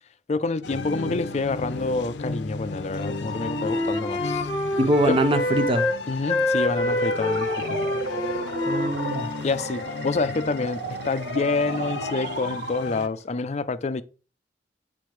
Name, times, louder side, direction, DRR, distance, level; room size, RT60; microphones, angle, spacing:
voice 1, 0.3-4.5 5.1-5.2 6.1-7.8 9.4-14.0, left 3 dB, 40° left, 0.4 m, -27 dB
sound 1, 0.6-13.1, left 4 dB, 85° left, 0.5 m, -35 dB
Wind instrument woodwind instrument, 2.9-6.0 6.3-10.0, left 1 dB, 25° left, 1.1 m, -27 dB
voice 2, 4.8-5.9 8.7-9.3, right 1 dB, 30° right, 0.7 m, -23 dB
sound 2, 6.7-13.2, right 2 dB, 60° right, 0.8 m, -34 dB
9.7 x 3.7 x 3.1 m
head